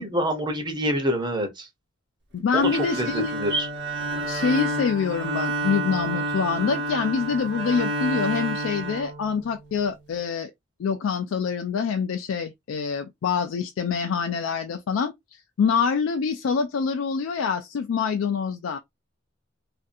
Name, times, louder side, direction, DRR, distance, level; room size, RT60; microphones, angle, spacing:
voice 1, 0.0-1.7 2.5-3.7, right 1 dB, 25° right, 0.7 m, -26 dB
voice 2, 2.3-3.4 4.3-10.5 10.8-15.1 15.6-18.8, left 6 dB, 85° left, 0.3 m, -25 dB
Bowed string instrument, 2.5-9.7, right 2 dB, 65° right, 0.9 m, -29 dB
2.6 x 2.4 x 2.5 m
head